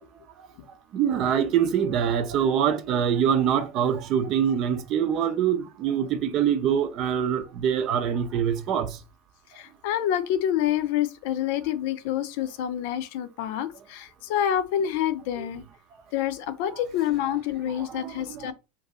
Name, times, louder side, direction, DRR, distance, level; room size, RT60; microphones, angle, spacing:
voice 1, 0.9-9.0 15.4-15.5 17.8-18.5, right 8 dB, 50° right, 0.6 m, -24 dB
voice 2, 9.6-15.6 16.1-18.5, left 10 dB, 65° left, 0.5 m, -27 dB
2.7 x 2.6 x 4.1 m
hypercardioid pair, 85°, 0 cm